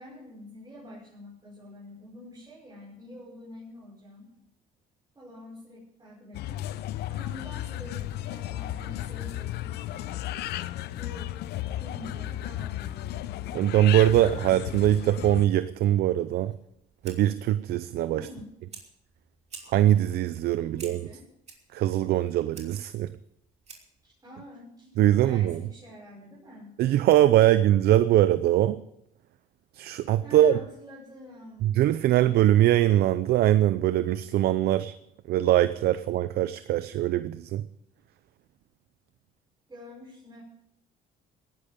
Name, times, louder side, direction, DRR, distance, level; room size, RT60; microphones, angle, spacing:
voice 1, 0.0-4.3 5.1-6.7 7.1-10.0 10.9-11.4 11.8-13.4 18.1-18.6 20.6-21.3 24.0-26.8 30.2-31.8 39.7-40.4, left 1 dB, 20° right, 6.0 m, -47 dB
sound 1, 6.3-15.5, left 14 dB, 75° left, 0.7 m, -34 dB
voice 2, 13.5-16.5 17.0-18.3 19.7-21.1 21.7-23.1 25.0-25.6 26.8-28.8 29.7-30.6 31.6-34.9 35.3-37.6, right 13 dB, 70° right, 0.6 m, -22 dB
Fire, 16.6-24.1, right 5 dB, 40° right, 3.0 m, -51 dB
18.0 x 11.0 x 5.2 m
cardioid pair, 110°, 17 cm